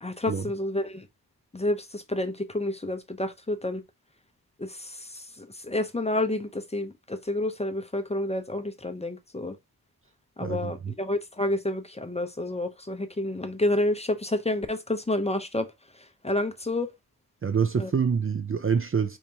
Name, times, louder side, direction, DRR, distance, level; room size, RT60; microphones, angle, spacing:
voice 1, 0.0-1.1 1.5-3.8 4.6-9.6 10.4-15.7 15.9-16.9 17.8-17.9, left 1 dB, 15° left, 0.6 m, -29 dB
voice 2, 10.4-10.7 17.4-19.2, right 6 dB, 35° right, 0.5 m, -26 dB
5.2 x 3.1 x 2.8 m
wide cardioid pair, 95°, 38 cm